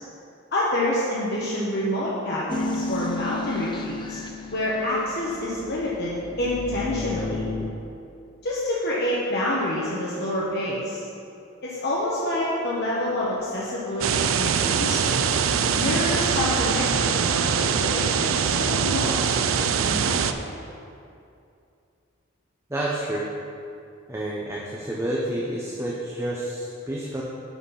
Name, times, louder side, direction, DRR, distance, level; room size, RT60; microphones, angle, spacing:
voice 1, 0.5-4.2 4.5-7.4 8.4-11.0 11.6-15.4 15.8-20.3, left 1 dB, 55° left, -6 dB, 1.1 m, -27 dB
sound 1, 2.5-7.7, left 2 dB, 25° left, 0.5 m, -33 dB
sound 2, 14.0-20.3, right 7 dB, 75° right, 0.4 m, -23 dB
voice 2, 22.7-23.3 24.1-27.2, right 1 dB, 15° right, -5 dB, 0.8 m, -29 dB
10.0 x 4.4 x 5.7 m, 2.6 s
head